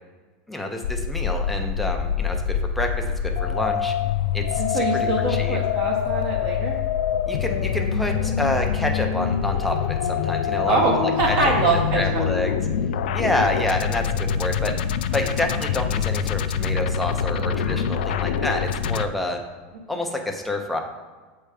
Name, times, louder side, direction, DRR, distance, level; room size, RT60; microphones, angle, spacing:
voice 1, 0.5-3.9 4.3-5.6 7.3-12.5 13.1-14.7 15.1-19.4 19.9-20.8, left 1 dB, ahead, 2 dB, 0.5 m, -28 dB
sound 1, 0.8-19.1, left 8 dB, 80° left, 0.3 m, -25 dB
voice 2, 4.6-6.8 10.7-12.2, right 3 dB, 35° right, -1 dB, 0.7 m, -24 dB
7.6 x 3.3 x 4.8 m, 1.4 s
supercardioid pair, 180°, 5 cm